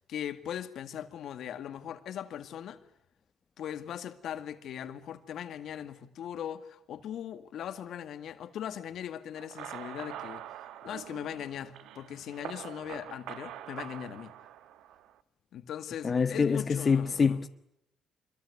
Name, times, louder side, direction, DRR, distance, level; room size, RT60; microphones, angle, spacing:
voice 1, 0.0-2.8 3.6-10.5 10.8-14.3 15.5-17.4, left 9 dB, 75° left, 2.0 m, -39 dB
sound 1, 9.4-15.2, right 11 dB, 90° right, 1.2 m, -44 dB
voice 2, 16.0-17.5, left 5 dB, 40° left, 1.0 m, -25 dB
26.0 x 22.5 x 9.6 m
cardioid pair, 90°, 0 cm